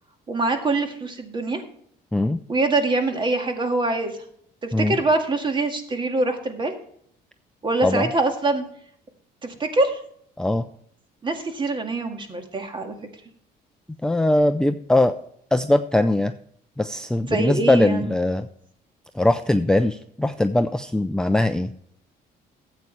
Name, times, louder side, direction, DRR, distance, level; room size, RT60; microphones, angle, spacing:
voice 1, 0.3-1.6 2.5-4.1 4.6-6.7 7.6-8.6 9.4-10.0 11.2-12.9 17.2-18.1, right 2 dB, 30° right, 6 dB, 1.9 m, -24 dB
voice 2, 14.0-15.2 15.5-16.3 16.8-18.5 19.1-21.7, left 1 dB, 5° left, 9 dB, 0.4 m, -21 dB
13.0 x 8.4 x 3.3 m, 0.67 s
cardioid pair, 110°, 17 cm